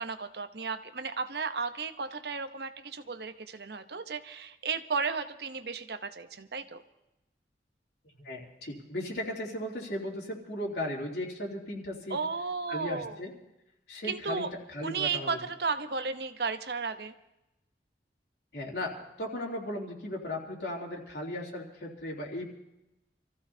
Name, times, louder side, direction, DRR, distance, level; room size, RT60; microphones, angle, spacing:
voice 1, 0.0-6.8 12.1-13.2 14.1-14.5 14.8-17.1, right 5 dB, 70° right, 10 dB, 0.9 m, -34 dB
voice 2, 8.1-12.2 12.7-13.3 13.9-15.4 18.5-22.5, left 1 dB, 70° left, -3 dB, 3.0 m, -36 dB
27.5 x 15.0 x 2.8 m, 0.91 s
head